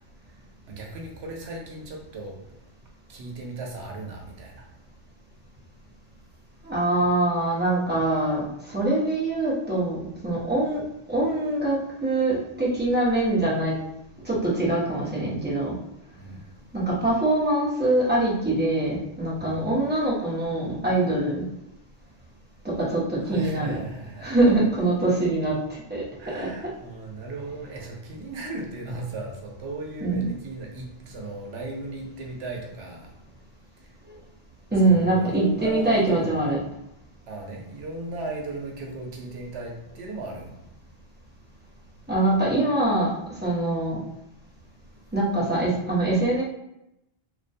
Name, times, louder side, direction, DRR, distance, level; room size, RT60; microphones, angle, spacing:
voice 1, 0.7-2.4 3.1-4.6 16.2-16.4 19.4-19.8 23.2-24.3 26.2-33.1 34.8-36.4 37.3-40.6, right 2 dB, 80° right, 0 dB, 0.9 m, -36 dB
voice 2, 6.6-10.8 11.1-13.8 14.2-15.8 16.7-21.5 22.6-23.8 24.2-25.6 25.9-26.5 28.4-28.5 30.0-30.3 34.7-36.6 42.1-43.1 43.4-44.0 45.1-46.4, right 2 dB, 10° right, -7 dB, 0.6 m, -23 dB
2.3 x 2.1 x 2.6 m, 0.84 s
omnidirectional pair, 1.1 m